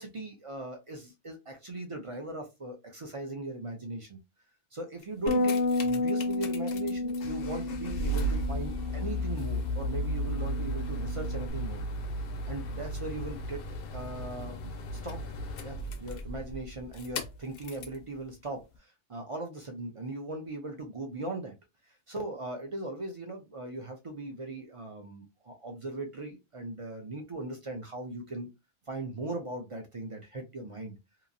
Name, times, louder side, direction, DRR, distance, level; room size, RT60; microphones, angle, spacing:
voice 1, 0.0-4.2 4.7-11.8 12.5-13.6 13.9-15.3 15.6-21.5 22.1-28.5 28.9-31.0, right 2 dB, 40° right, 0.5 m, -39 dB
sound 1, 5.0-18.0 18.7-18.8, equal, 60° left, 0.7 m, -35 dB
Bass guitar, 5.3-11.5, left 2 dB, 80° left, 1.1 m, -32 dB
2.9 x 2.5 x 2.5 m
omnidirectional pair, 1.2 m